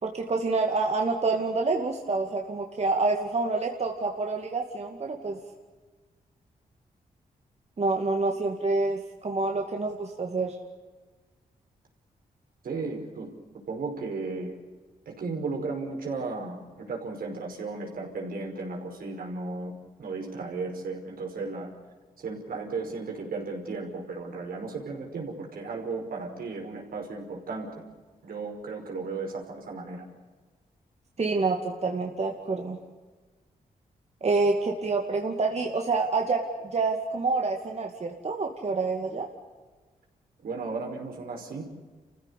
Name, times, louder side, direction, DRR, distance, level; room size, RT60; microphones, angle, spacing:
voice 1, 0.0-5.4 7.8-10.6 31.2-32.8 34.2-36.5 36.7-39.3, right 3 dB, 45° right, 2 dB, 2.4 m, -27 dB
voice 2, 12.6-13.3 13.7-14.5 15.1-21.7 22.2-27.8 28.2-30.1 40.4-41.6, right 3 dB, 75° right, 1 dB, 5.3 m, -35 dB
29.0 x 15.5 x 8.5 m, 1.3 s
cardioid pair, 70°, 15 cm